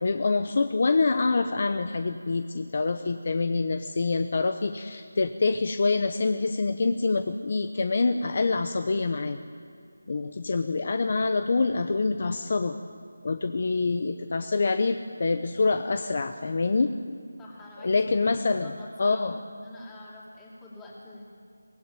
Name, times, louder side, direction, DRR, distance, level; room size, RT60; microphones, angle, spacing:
voice 1, 0.0-9.4 10.1-12.8 13.2-16.9 17.8-18.7 19.0-19.4, left 3 dB, 40° left, 9 dB, 0.8 m, -26 dB
voice 2, 17.4-19.2 19.5-21.2, left 1 dB, 5° left, -5 dB, 3.0 m, -46 dB
23.5 x 18.5 x 9.0 m, 2.2 s
figure-of-eight pair, 175°, 0 cm